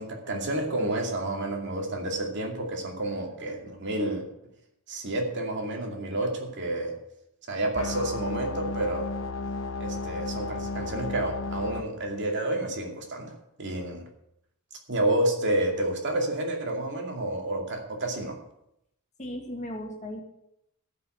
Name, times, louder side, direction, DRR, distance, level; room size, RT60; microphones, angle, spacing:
voice 1, 0.0-4.2 4.9-7.0 7.5-9.1 9.8-14.0 14.9-18.4, right 1 dB, 55° right, 1 dB, 2.4 m, -30 dB
sound 1, 7.7-11.8, left 3 dB, 60° left, 0.9 m, -33 dB
voice 2, 19.2-20.2, left 1 dB, 35° left, 2 dB, 2.0 m, -36 dB
15.0 x 5.7 x 7.9 m, 0.80 s
head